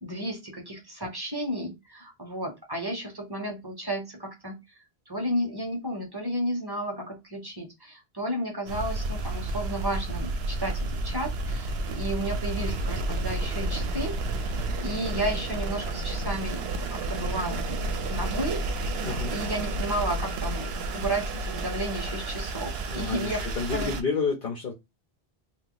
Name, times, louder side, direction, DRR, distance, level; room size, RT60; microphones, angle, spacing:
voice 1, 0.0-4.6 5.1-17.8 18.1-18.9 19.3-23.4 23.7-23.9, right 1 dB, 25° right, 2 dB, 0.8 m, -33 dB
sound 1, 8.7-24.0, right 2 dB, 75° right, 0.8 m, -31 dB
voice 2, 22.9-24.7, left 5 dB, 60° left, 1 dB, 0.8 m, -30 dB
2.8 x 2.2 x 3.8 m, 0.22 s
omnidirectional pair, 1.1 m